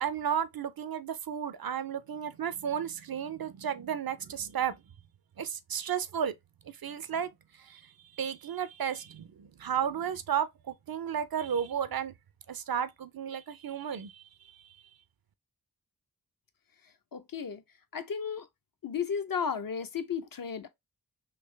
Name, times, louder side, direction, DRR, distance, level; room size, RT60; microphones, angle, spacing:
voice 1, 0.0-4.8 5.4-6.3 6.7-7.3 7.6-7.8 8.2-12.2 12.5-14.2, right 8 dB, 70° right, 0.5 m, -33 dB
voice 2, 17.1-17.6 17.9-18.5 18.8-20.7, left 7 dB, 65° left, 0.7 m, -34 dB
3.3 x 2.7 x 3.2 m
wide cardioid pair, 50°, 37 cm